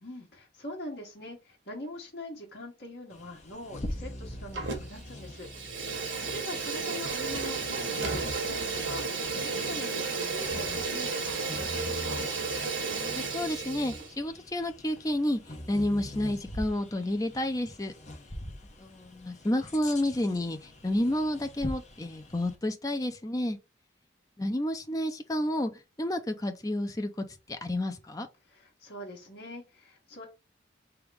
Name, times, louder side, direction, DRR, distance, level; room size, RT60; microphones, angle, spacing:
voice 1, 0.0-5.8 6.3-12.2 28.4-30.3, left 1 dB, 55° left, 1.4 m, -43 dB
Bird vocalization bird call bird song, 3.1-22.6, left 1 dB, 35° left, 0.9 m, -43 dB
Fire, 4.5-5.1 5.4-14.1, right 4 dB, 80° right, 1.4 m, -33 dB
voice 2, 6.0-6.3 12.9-15.4 15.7-17.9 18.8-20.6 20.8-23.6 24.4-25.7 26.0-28.3, left 1 dB, 20° left, 0.5 m, -30 dB
3.6 x 2.9 x 4.6 m
head